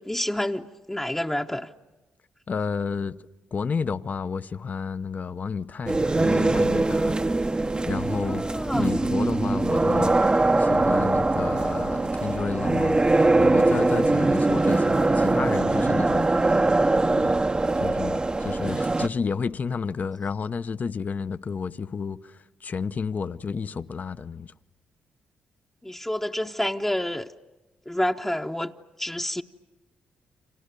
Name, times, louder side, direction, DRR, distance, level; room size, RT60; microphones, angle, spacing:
voice 1, 0.0-1.7 8.2-9.0 25.8-27.3 27.9-28.7 29.0-29.4, left 1 dB, 10° left, 0.9 m, -29 dB
voice 2, 2.5-3.2 3.5-7.2 7.5-8.4 8.8-10.2 10.6-13.0 13.4-16.7 17.2-17.3 17.8-24.5, left 5 dB, 50° left, 0.8 m, -31 dB
sound 1, 5.9-19.1, right 2 dB, 25° right, 0.8 m, -22 dB
30.0 x 26.5 x 6.8 m
supercardioid pair, 55°, 4 cm